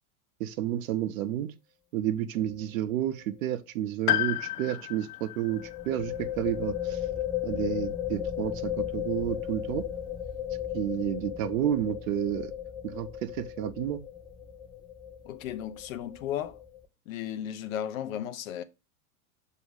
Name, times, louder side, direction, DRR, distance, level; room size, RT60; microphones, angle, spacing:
voice 1, 0.4-1.5 1.9-7.1 7.4-9.8 10.7-12.5 12.8-14.0, right 12 dB, 60° right, 0.8 m, -31 dB
sound 1, 2.4-2.6 2.9-3.0 5.5-16.8, left 10 dB, 10° left, 0.8 m, -35 dB
Piano, 4.1-8.2 9.5-9.6, left 14 dB, 85° left, 0.5 m, -33 dB
voice 2, 15.2-16.6 17.1-18.6, left 10 dB, 65° left, 0.9 m, -35 dB
7.0 x 2.9 x 4.8 m
hypercardioid pair, 100°, 45 cm